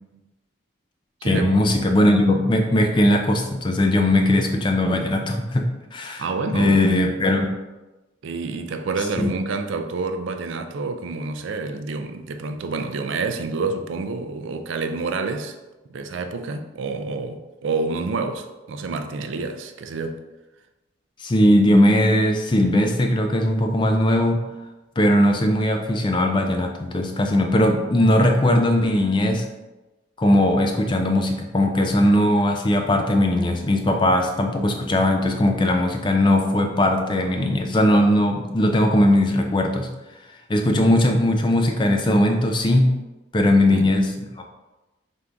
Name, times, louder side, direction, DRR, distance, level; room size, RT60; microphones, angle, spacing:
voice 1, 1.2-6.2 6.5-7.5 9.2-9.3 21.2-24.4 25.0-29.4 30.2-39.9 40.5-42.9 43.3-44.1 44.4-44.5, left 1 dB, 25° left, 4 dB, 0.4 m, -19 dB
voice 2, 6.2-6.8 8.2-15.6 15.9-20.2 43.7-43.8, right 3 dB, 75° right, 7 dB, 0.4 m, -28 dB
3.6 x 2.6 x 4.4 m, 1.1 s
head